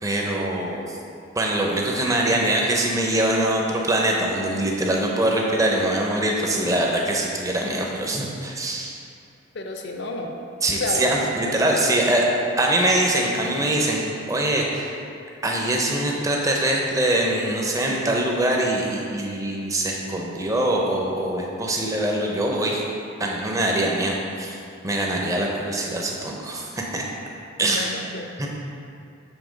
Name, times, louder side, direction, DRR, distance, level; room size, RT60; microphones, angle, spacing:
voice 1, 0.0-1.0 1.4-9.0 10.6-12.3 12.6-15.0 15.4-22.8 23.2-24.6 24.8-27.1 27.6-27.9 28.4-28.5, right 1 dB, 15° right, -1 dB, 0.7 m, -23 dB
voice 2, 9.5-10.4 10.7-11.1 11.4-11.6 27.7-28.5, left 2 dB, 60° left, 3 dB, 0.6 m, -31 dB
7.2 x 3.4 x 5.1 m, 2.5 s
head